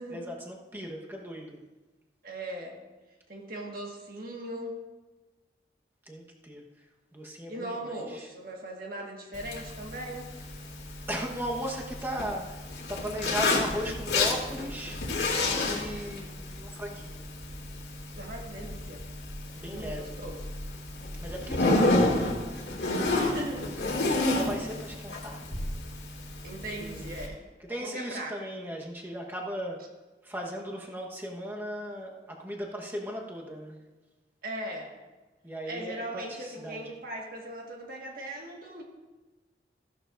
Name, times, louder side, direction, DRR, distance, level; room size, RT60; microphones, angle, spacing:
voice 1, 0.1-1.6 6.1-6.6 7.1-8.3 11.1-12.6 12.9-17.3 19.6-20.2 21.2-22.6 24.1-25.4 26.8-27.2 27.7-29.8 30.2-33.8 35.4-37.0, equal, 10° right, -1 dB, 1.2 m, -37 dB
voice 2, 2.2-2.8 3.3-4.8 7.5-10.3 18.1-19.0 19.6-20.5 23.1-23.8 26.4-27.4 27.7-28.3 34.4-34.9 35.7-38.8, right 1 dB, 55° right, 0 dB, 1.7 m, -39 dB
Zipper (clothing), 9.3-27.3, left 2 dB, 75° left, 2.3 m, -31 dB
15.0 x 12.0 x 2.6 m, 1.2 s
head